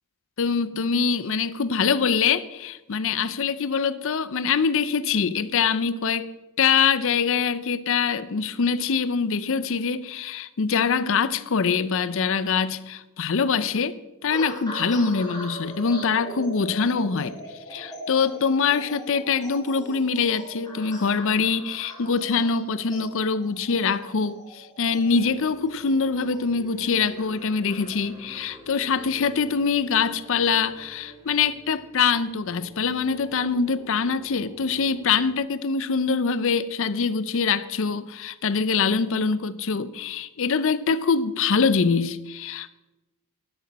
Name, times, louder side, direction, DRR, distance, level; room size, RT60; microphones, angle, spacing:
voice 1, 0.4-6.3 6.6-13.9 14.2-17.4 17.7-42.7, left 5 dB, 60° left, 0.5 m, -24 dB
sound 1, 14.3-30.8 31.4-31.7, equal, 20° left, 2.8 m, -41 dB
sound 2, 24.8-35.4, right 1 dB, 15° right, 2.1 m, -48 dB
11.5 x 11.0 x 4.1 m
head